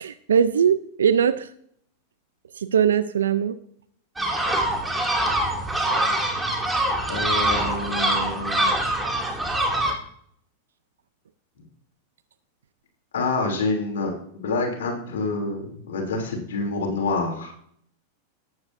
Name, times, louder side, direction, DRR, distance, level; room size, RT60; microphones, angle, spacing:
voice 1, 0.0-1.5 2.6-3.5, right 8 dB, 85° right, 13 dB, 0.5 m, -21 dB
sound 1, 4.2-9.9, right 1 dB, 10° right, 2.5 m, -24 dB
voice 2, 7.1-8.7 13.1-17.5, left 3 dB, 80° left, 1 dB, 3.0 m, -27 dB
14.0 x 9.6 x 2.6 m, 0.65 s
hypercardioid pair, 105°, 0 cm